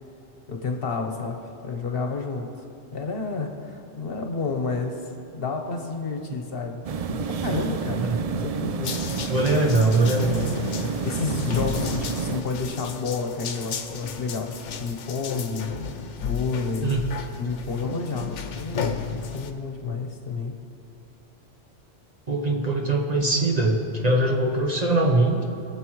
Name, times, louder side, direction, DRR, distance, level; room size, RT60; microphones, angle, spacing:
voice 1, 0.5-2.5 2.9-6.8 7.1-9.7 11.0-15.7 16.2-16.9 17.4-20.5, left 4 dB, 55° left, 3 dB, 1.1 m, -30 dB
sound 1, 6.8-12.4, right 5 dB, 75° right, 0.3 m, -29 dB
sound 2, 8.8-19.5, left 6 dB, 85° left, 1.1 m, -34 dB
voice 2, 9.3-10.5 16.8-17.0 22.3-25.4, right 2 dB, 40° right, 1 dB, 0.9 m, -22 dB
22.0 x 7.6 x 3.1 m, 2.8 s
omnidirectional pair, 1.2 m